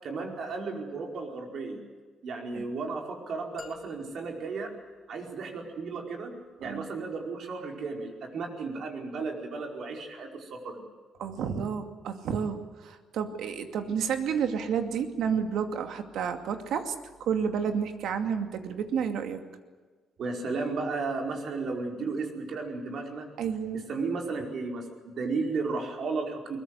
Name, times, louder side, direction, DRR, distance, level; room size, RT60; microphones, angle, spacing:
voice 1, 0.0-1.8 2.2-4.7 5.1-6.3 6.6-10.8 20.2-23.3 23.9-26.6, right 4 dB, 55° right, 2 dB, 4.9 m, -34 dB
sound 1, 3.6-5.6, left 4 dB, 25° left, 3.1 m, -51 dB
voice 2, 11.2-16.9 17.2-19.4 23.4-23.8, right 7 dB, 75° right, 6 dB, 2.4 m, -30 dB
22.0 x 20.5 x 8.2 m, 1.4 s
cardioid pair, 140°, 0 cm